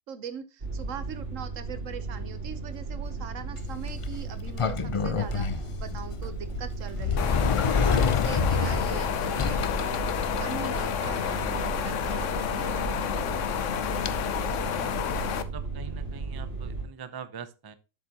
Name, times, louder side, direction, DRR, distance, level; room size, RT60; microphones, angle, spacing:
voice 1, 0.1-10.0 10.4-13.4, right 7 dB, 85° right, 11 dB, 1.3 m, -41 dB
sound 1, 0.6-16.8, right 4 dB, 65° right, 3.4 m, -35 dB
Sliding door, 3.6-14.1, left 5 dB, 50° left, 0.3 m, -30 dB
sound 2, 7.2-15.4, left 9 dB, 75° left, 1.0 m, -30 dB
voice 2, 14.7-17.7, right 7 dB, 30° right, 11 dB, 0.5 m, -44 dB
8.0 x 6.8 x 2.8 m, 0.30 s
omnidirectional pair, 1.3 m